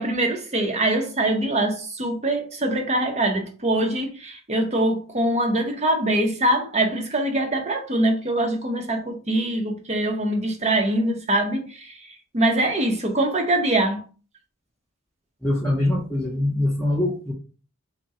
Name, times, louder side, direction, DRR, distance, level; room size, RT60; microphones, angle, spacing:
voice 1, 0.0-12.0 12.3-14.0, right 1 dB, 30° right, 0.8 m, -23 dB
voice 2, 15.4-17.3, left 1 dB, 5° left, 0.8 m, -23 dB
3.6 x 2.3 x 4.1 m
head